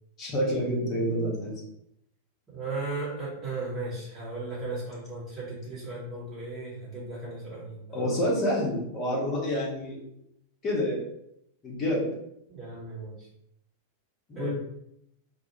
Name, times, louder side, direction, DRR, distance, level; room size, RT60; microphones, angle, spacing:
voice 1, 0.2-1.5 7.9-10.0 10.6-11.0 11.6-12.0 14.3-14.5, equal, 30° left, -4 dB, 0.9 m, -28 dB
voice 2, 2.5-8.2 12.5-13.3 14.3-14.5, right 3 dB, 25° right, -8 dB, 1.1 m, -36 dB
2.3 x 2.1 x 3.0 m, 0.77 s
figure-of-eight pair, 90°, 0 cm